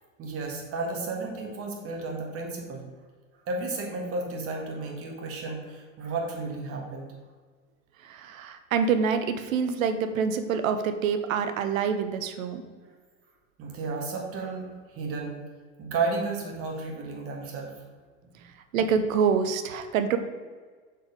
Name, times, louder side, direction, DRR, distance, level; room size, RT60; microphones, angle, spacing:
voice 1, 0.2-2.8 3.5-7.1 13.6-15.4 15.8-17.9 18.2-18.4, right 3 dB, 35° right, 0 dB, 2.1 m, -33 dB
voice 2, 8.0-12.6 18.7-20.2, right 6 dB, 70° right, 8 dB, 1.0 m, -26 dB
6.4 x 4.8 x 5.3 m, 1.5 s
hypercardioid pair, 110°, 41 cm